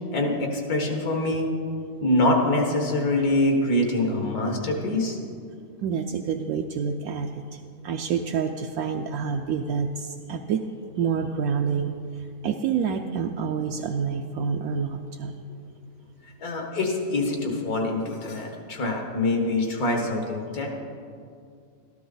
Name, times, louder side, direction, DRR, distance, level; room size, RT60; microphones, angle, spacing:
voice 1, 0.0-1.5 2.0-5.2 16.4-20.7, left 1 dB, 80° left, 2 dB, 2.0 m, -24 dB
voice 2, 5.8-10.6 11.0-15.3, right 6 dB, 80° right, 2 dB, 1.0 m, -28 dB
13.0 x 12.0 x 3.9 m, 2.3 s
omnidirectional pair, 1.5 m